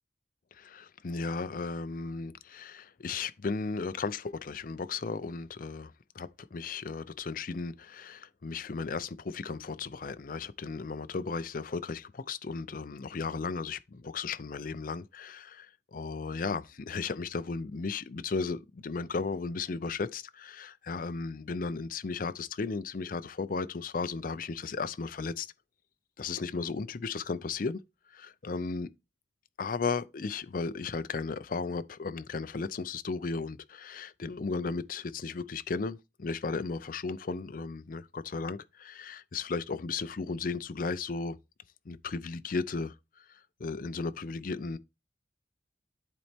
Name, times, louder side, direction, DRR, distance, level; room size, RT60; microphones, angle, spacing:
voice 1, 0.5-25.5 26.2-27.8 28.1-28.9 29.6-41.4 41.9-44.8, left 4 dB, 50° left, 0.5 m, -35 dB
10.5 x 4.2 x 3.5 m
head